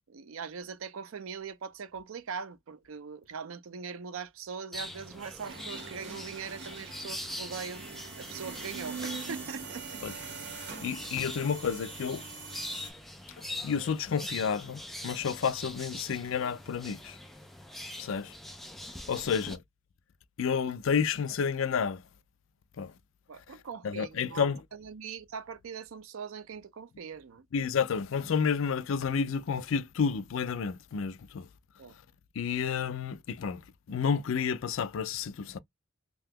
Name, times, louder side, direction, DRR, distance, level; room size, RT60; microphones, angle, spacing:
voice 1, 0.1-7.8 8.2-10.0 23.3-27.5 31.8-32.0, right 6 dB, 80° right, 0.5 m, -41 dB
sound 1, 4.7-19.6, left 1 dB, ahead, 0.4 m, -43 dB
sound 2, 5.2-12.9, right 4 dB, 55° right, 1.0 m, -43 dB
voice 2, 10.5-12.2 13.6-17.2 18.0-18.3 19.1-19.6 20.4-22.0 22.8-22.9 23.8-24.6 27.5-31.5 32.4-33.6 33.9-35.6, left 6 dB, 75° left, 0.4 m, -30 dB
2.8 x 2.3 x 3.5 m
head